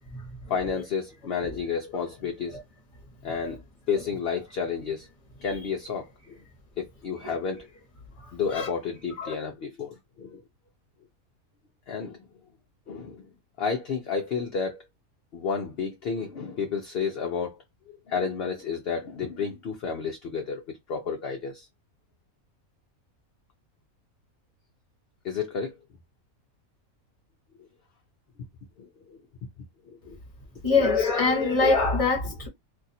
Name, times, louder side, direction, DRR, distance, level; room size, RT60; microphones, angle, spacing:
voice 1, 0.5-2.6 3.2-3.6 3.9-5.1 5.4-6.4 6.8-7.7 8.3-10.4 11.9-12.2 12.9-13.3 13.6-14.8 15.3-17.6 17.9-21.7 25.2-25.8 28.8-28.9 29.9-30.2 32.2-32.4, left 6 dB, 55° left, 0.7 m, -31 dB
voice 2, 30.6-32.5, left 4 dB, 25° left, 1.0 m, -23 dB
2.6 x 2.5 x 4.1 m
omnidirectional pair, 1.5 m